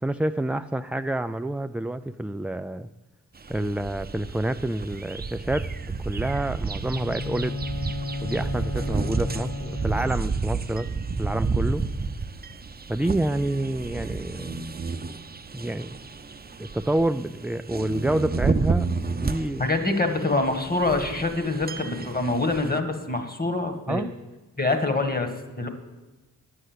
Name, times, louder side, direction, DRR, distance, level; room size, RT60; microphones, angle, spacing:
voice 1, 0.0-2.9 3.5-5.7 6.0-7.6 8.2-10.9 11.2-11.8 12.9-14.6 15.5-15.9 16.6-19.7 23.9-24.1, right 1 dB, 5° right, 9 dB, 0.3 m, -28 dB
sound 1, 3.4-22.8, right 4 dB, 30° right, 0.7 m, -31 dB
Bowed string instrument, 6.8-10.5, left 3 dB, 50° left, 3.4 m, -33 dB
voice 2, 19.6-24.1 24.6-25.3 25.6-25.7, left 2 dB, 25° left, 7 dB, 1.7 m, -25 dB
9.8 x 6.6 x 8.0 m, 1.1 s
supercardioid pair, 50°, 33 cm